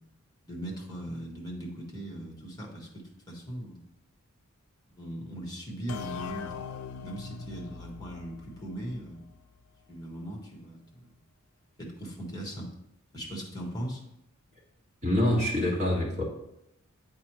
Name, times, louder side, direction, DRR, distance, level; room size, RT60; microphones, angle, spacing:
voice 1, 0.4-3.8 4.9-6.5 7.0-9.3 9.9-11.1 11.8-12.7 13.1-14.0, right 1 dB, 20° left, 0 dB, 1.3 m, -39 dB
sound 1, 5.9-9.5, left 6 dB, 70° left, 0.4 m, -41 dB
voice 2, 15.0-16.2, left 1 dB, 35° right, -3 dB, 1.7 m, -25 dB
8.2 x 4.5 x 3.1 m, 0.82 s
head